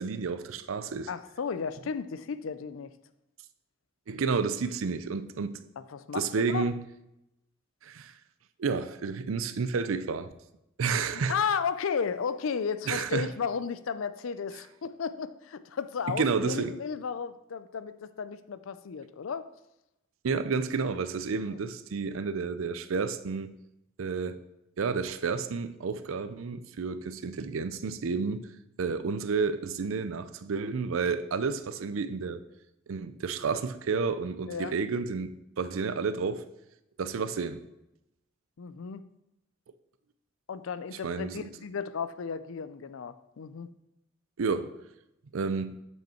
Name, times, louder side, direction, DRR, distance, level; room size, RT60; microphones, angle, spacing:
voice 1, 0.0-1.1 4.1-5.6 6.1-6.8 7.8-8.1 8.6-10.3 10.8-11.4 12.9-13.3 16.1-16.8 20.2-23.5 24.0-24.4 24.8-28.4 28.8-32.4 32.9-36.5 37.0-37.6 41.0-41.5 44.4-44.7 45.3-45.8, right 5 dB, 90° right, 0.5 m, -30 dB
voice 2, 1.1-2.9 5.8-6.7 11.1-19.5 21.5-21.6 22.4-22.5 34.5-34.7 38.6-39.0 40.5-43.7, left 6 dB, 85° left, 0.4 m, -34 dB
7.9 x 5.4 x 4.4 m
head